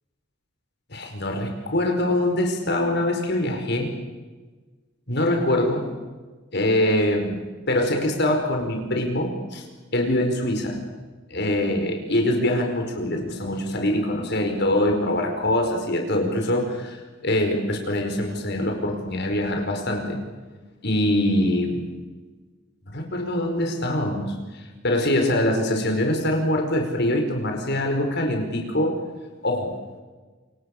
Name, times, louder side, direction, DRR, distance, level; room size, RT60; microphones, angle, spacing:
voice 1, 0.9-3.9 5.1-5.8 6.5-9.6 9.9-10.8 11.3-20.2 20.8-21.9 22.9-29.0 29.4-29.7, left 1 dB, 55° left, 4 dB, 5.1 m, -24 dB
28.5 x 27.0 x 6.8 m, 1.3 s
head